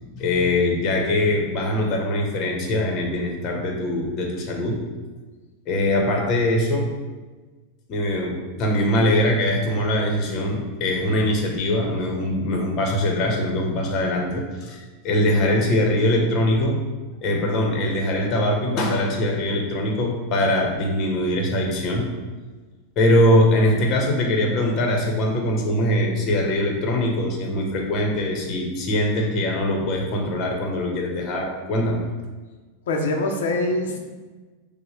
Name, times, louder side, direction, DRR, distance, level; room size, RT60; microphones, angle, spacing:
voice 1, 0.0-4.7 5.7-6.9 7.9-16.8 17.2-22.1 23.0-32.0, left 1 dB, 35° left, 1 dB, 0.8 m, -22 dB
voice 2, 32.9-34.0, left 2 dB, 85° left, 2 dB, 0.5 m, -23 dB
6.0 x 2.1 x 3.2 m, 1.3 s
supercardioid pair, 150°, 0 cm